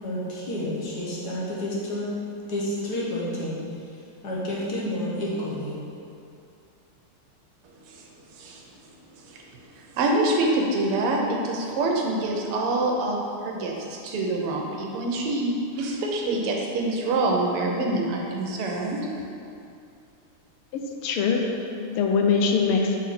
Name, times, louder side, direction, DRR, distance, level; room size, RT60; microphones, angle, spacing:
voice 1, 0.0-2.1 2.5-3.7 4.2-5.8, left 1 dB, 55° left, -6 dB, 1.5 m, -30 dB
voice 2, 8.3-8.6 9.2-9.4 9.7-19.1, right 2 dB, 85° right, 0 dB, 1.7 m, -26 dB
voice 3, 20.7-23.0, left 5 dB, 85° left, 3 dB, 1.6 m, -23 dB
7.0 x 4.1 x 4.2 m, 2.6 s
omnidirectional pair, 2.4 m